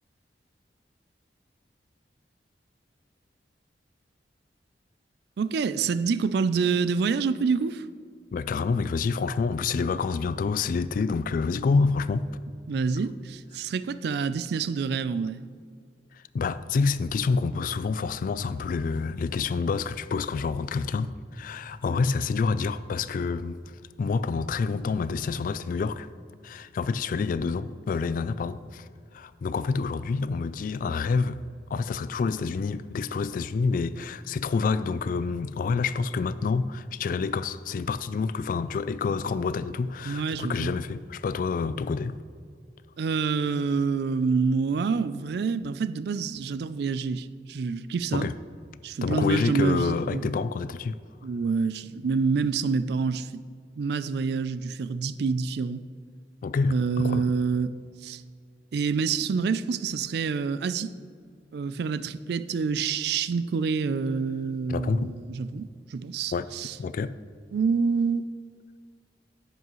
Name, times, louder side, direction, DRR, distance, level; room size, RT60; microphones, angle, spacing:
voice 1, 5.4-7.9 12.7-15.4 40.0-40.7 43.0-48.3 48.8-50.3 51.2-53.4 53.8-55.8 56.7-57.7 58.0-58.2 58.7-60.9 61.5-66.7 67.5-68.3, right 5 dB, 65° right, 0.3 m, -27 dB
voice 2, 8.3-12.3 16.1-23.6 24.0-26.1 26.4-28.9 29.1-31.4 31.7-42.2 48.1-48.3 49.0-51.0 56.4-57.3 64.7-65.1 66.3-66.5 66.8-67.1, left 4 dB, 50° left, 0.3 m, -28 dB
11.0 x 8.1 x 3.1 m
head